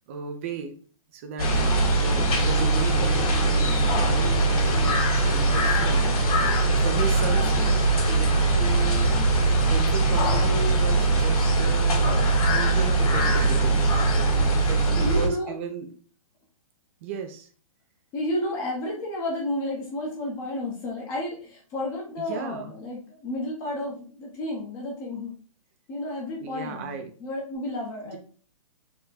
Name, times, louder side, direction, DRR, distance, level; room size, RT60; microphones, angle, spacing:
voice 1, 0.1-0.8 1.1-3.7 4.0-6.1 6.8-7.7 8.1-9.3 9.7-12.2 12.5-13.9 14.6-15.9 17.0-17.5 22.2-22.8 26.4-27.1, right 6 dB, 20° right, 6 dB, 0.4 m, -35 dB
sound 1, 1.4-15.3, right 2 dB, 80° left, 1.6 m, -21 dB
voice 2, 7.6-7.9 14.9-15.5 18.1-25.3 25.9-28.2, left 1 dB, 15° left, -1 dB, 0.7 m, -31 dB
4.3 x 2.1 x 4.0 m, 0.40 s
hypercardioid pair, 170°, 18 cm